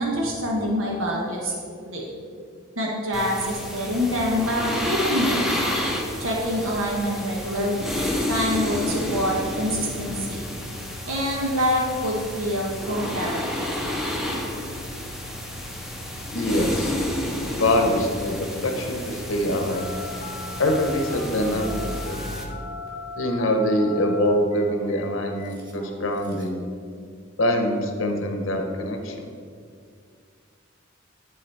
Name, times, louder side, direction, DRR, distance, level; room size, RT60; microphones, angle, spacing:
voice 1, 0.0-1.5 1.8-2.1 2.8-5.4 6.2-7.9 8.3-10.4 11.0-13.5, equal, 80° right, -2 dB, 1.3 m, -25 dB
sound 1, 3.1-22.4, left 1 dB, ahead, 0.8 m, -30 dB
voice 2, 16.3-16.9 17.6-19.9 20.6-22.2 23.2-26.6 27.4-29.3, left 1 dB, 70° left, 4 dB, 0.8 m, -24 dB
Telephone, 19.7-26.6, left 3 dB, 20° right, 1.7 m, -39 dB
10.5 x 3.9 x 4.6 m, 2.2 s
head